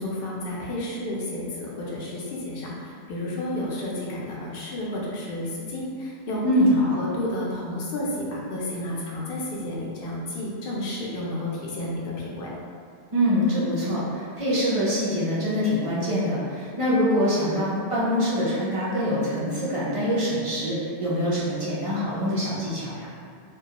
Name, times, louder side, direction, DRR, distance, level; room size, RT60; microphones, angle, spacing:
voice 1, 0.0-12.5, left 1 dB, 65° left, -5 dB, 0.7 m, -31 dB
voice 2, 6.4-7.0 13.1-23.1, equal, 50° right, -8 dB, 0.4 m, -24 dB
2.2 x 2.2 x 2.8 m, 2.2 s
omnidirectional pair, 1.1 m